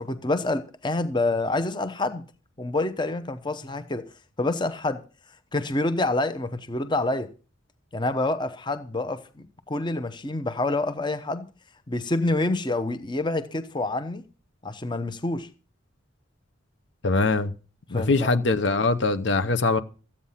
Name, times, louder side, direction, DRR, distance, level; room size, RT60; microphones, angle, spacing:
voice 1, 0.0-2.2 2.6-4.0 4.4-5.0 5.5-7.3 7.9-11.5 11.9-14.2 14.6-15.5 17.9-18.4, left 2 dB, 20° left, 0.8 m, -27 dB
voice 2, 17.0-17.5 17.9-19.8, left 3 dB, 60° left, 0.8 m, -22 dB
14.5 x 8.6 x 5.6 m
head